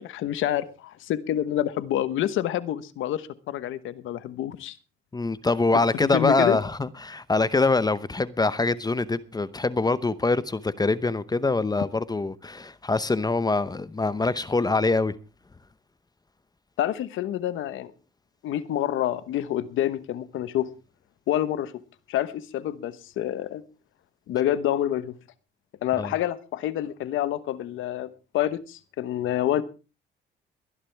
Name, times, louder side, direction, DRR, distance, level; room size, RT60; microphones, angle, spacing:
voice 1, 0.0-4.8 6.0-6.6 16.8-17.9 18.4-20.7 21.3-21.7 22.1-23.6 24.3-25.1 25.8-28.1 28.3-29.6, left 12 dB, 85° left, 1.1 m, -27 dB
voice 2, 5.1-15.1 26.0-26.1, left 3 dB, 20° left, 0.8 m, -24 dB
22.0 x 11.0 x 3.4 m
cardioid pair, 90°, 20 cm